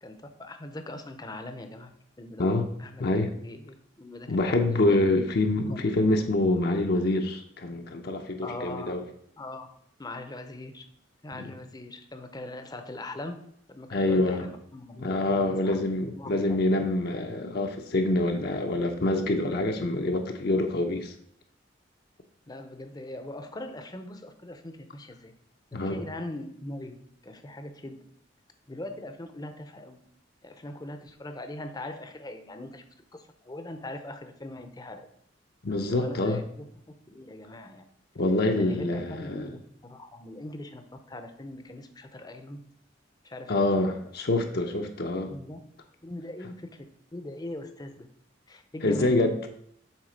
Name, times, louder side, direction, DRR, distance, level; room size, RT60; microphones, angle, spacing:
voice 1, 0.0-1.9 2.2-2.4 2.8-5.0 5.7-6.1 8.4-9.0 9.4-9.7 10.0-10.8 11.2-13.4 13.7-16.9 22.5-25.3 25.7-27.0 27.2-28.0 28.7-30.0 30.4-32.8 33.1-35.1 35.9-37.8 38.6-42.6 43.2-44.0 45.3-45.6 46.0-46.7 47.1-48.1 48.5-49.3, left 1 dB, 20° left, 7 dB, 0.6 m, -41 dB
voice 2, 3.0-3.3 4.3-9.0 11.3-11.5 13.9-14.5 15.0-21.1 25.7-26.0 35.6-36.4 38.2-39.5 43.5-45.3 48.8-49.5, left 2 dB, 55° left, 4 dB, 0.7 m, -26 dB
7.4 x 3.7 x 5.0 m, 0.69 s
head